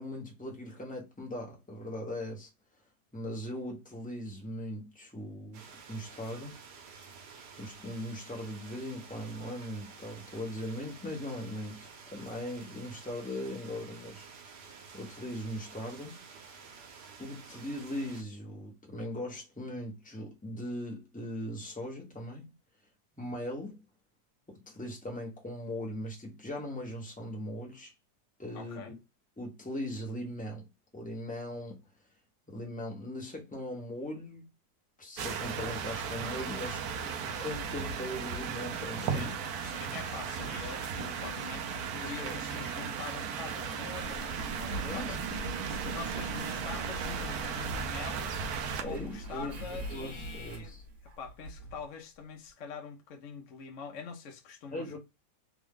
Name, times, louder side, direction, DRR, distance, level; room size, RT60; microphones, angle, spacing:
voice 1, 0.0-2.5 3.1-6.6 7.6-14.3 14.9-16.2 16.5-16.7 17.2-22.5 23.2-23.8 24.5-27.9 28.4-29.0 29.4-30.7 30.9-31.8 32.5-34.4 35.0-39.3 42.1-42.4 44.8-45.4 48.8-50.8 54.7-55.0, left 1 dB, 5° left, 0.9 m, -39 dB
sound 1, 5.5-18.2, right 5 dB, 90° right, 1.5 m, -51 dB
voice 2, 28.5-28.9 39.0-45.2 45.6-48.4 48.8-50.7 51.2-55.0, left 5 dB, 60° left, 0.9 m, -44 dB
sound 2, 35.2-48.8, right 6 dB, 70° right, 1.1 m, -36 dB
Engine, 44.0-51.8 52.5-52.6, equal, 50° right, 1.2 m, -42 dB
3.5 x 2.2 x 3.6 m
omnidirectional pair, 1.7 m